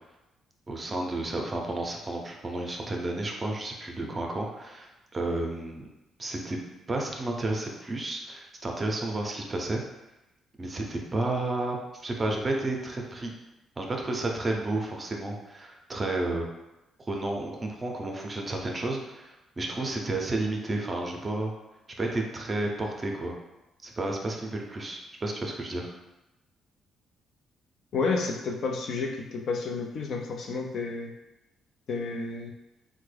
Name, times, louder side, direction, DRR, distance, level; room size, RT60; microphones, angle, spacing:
voice 1, 0.7-5.9 6.2-6.6 6.9-9.8 10.6-13.3 13.8-16.5 17.1-21.5 22.0-23.4 23.8-25.9, right 2 dB, 30° right, 1 dB, 0.6 m, -31 dB
voice 2, 27.9-31.1 31.9-32.5, left 4 dB, 65° left, 2 dB, 0.5 m, -30 dB
3.5 x 2.2 x 3.3 m, 0.99 s
cardioid pair, 90°, 0 cm